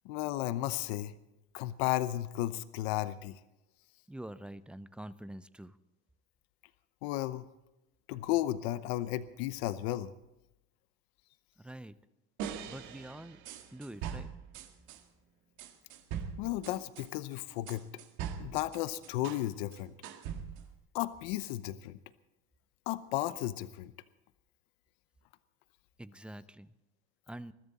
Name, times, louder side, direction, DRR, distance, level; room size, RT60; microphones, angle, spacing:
voice 1, 0.0-1.1 1.5-3.4 7.0-7.5 8.1-10.1 16.4-17.9 18.4-19.9 20.9-22.0 22.9-23.9, left 15 dB, 90° left, 14 dB, 0.8 m, -34 dB
voice 2, 4.1-5.8 11.6-11.9 12.7-13.4 13.7-14.3 26.0-26.7 27.3-27.5, right 1 dB, 5° right, 15 dB, 0.4 m, -46 dB
sound 1, 12.4-15.0 15.6-19.5 19.7-20.7, right 8 dB, 75° right, 2.0 m, -42 dB
21.5 x 14.0 x 4.1 m, 0.95 s
cardioid pair, 130°, 31 cm